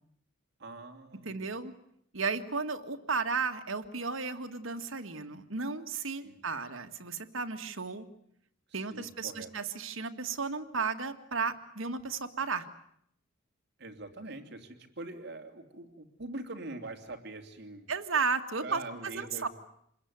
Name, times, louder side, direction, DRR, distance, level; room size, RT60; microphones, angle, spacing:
voice 1, 0.6-1.4 6.2-6.4 8.7-9.5 13.8-17.9 18.6-19.5, right 2 dB, 55° right, 5 dB, 3.1 m, -43 dB
voice 2, 1.3-1.7 2.1-8.1 8.7-12.7 17.9-19.5, right 4 dB, 80° right, 8 dB, 1.9 m, -34 dB
27.5 x 21.0 x 9.6 m, 0.73 s
head